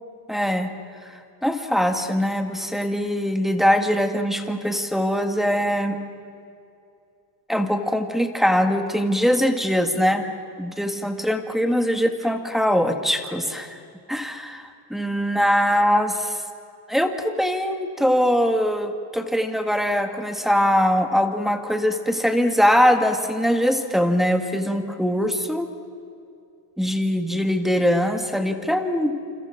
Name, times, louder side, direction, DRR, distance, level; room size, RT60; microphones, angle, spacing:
voice 1, 0.3-0.7 1.0-6.0 7.5-10.3 10.6-13.8 14.1-16.4 16.9-25.7 26.8-29.1, equal, ahead, 5 dB, 1.8 m, -22 dB
29.0 x 28.5 x 6.0 m, 2.5 s
cardioid pair, 155°, 48 cm